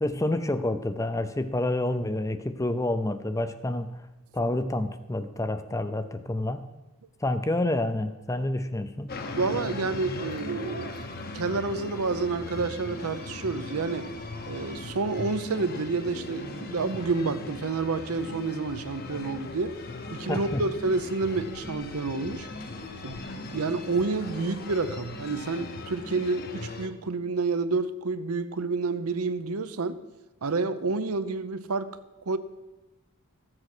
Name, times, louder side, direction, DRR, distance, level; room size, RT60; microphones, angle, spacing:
voice 1, 0.0-3.9 4.3-6.6 7.2-9.1 20.3-20.6, left 1 dB, 15° left, 0.5 m, -28 dB
sound 1, 9.1-26.9, left 2 dB, 45° left, 0.9 m, -39 dB
voice 2, 9.3-11.0 11.3-14.1 14.5-19.8 20.1-22.5 23.0-23.2 23.5-30.0 30.4-32.0 32.3-32.4, right 3 dB, 80° right, 0.7 m, -29 dB
14.0 x 7.8 x 6.0 m
head